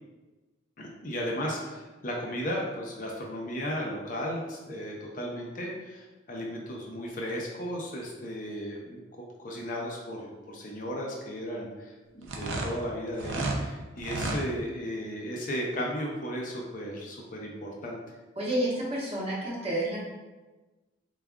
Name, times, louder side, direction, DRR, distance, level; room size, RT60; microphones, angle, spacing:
voice 1, 0.8-9.0 9.4-18.0, equal, 45° left, -2 dB, 0.6 m, -35 dB
sound 1, 12.2-13.6 14.0-14.4, right 2 dB, 70° right, 0.6 m, -31 dB
voice 2, 18.4-20.0, right 1 dB, 30° right, -5 dB, 1.0 m, -29 dB
3.9 x 3.5 x 2.3 m, 1.2 s
head